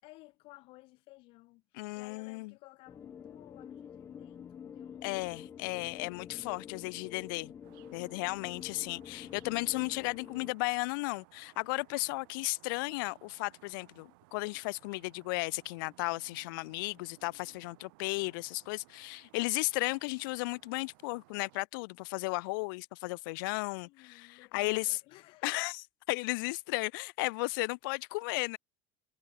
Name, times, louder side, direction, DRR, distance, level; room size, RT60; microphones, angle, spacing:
voice 1, 0.0-6.1 23.8-25.6 27.5-27.6, left 22 dB, 50° left, 6.7 m, -57 dB
voice 2, 1.7-2.5 5.0-7.5 7.9-25.0 25.4-25.8 26.1-28.6, left 26 dB, 70° left, 0.5 m, -35 dB
sound 1, 2.9-10.5, left 8 dB, 20° left, 1.9 m, -48 dB
sound 2, 7.6-21.6, right 26 dB, 70° right, 2.5 m, -62 dB
cardioid pair, 165°, 12 cm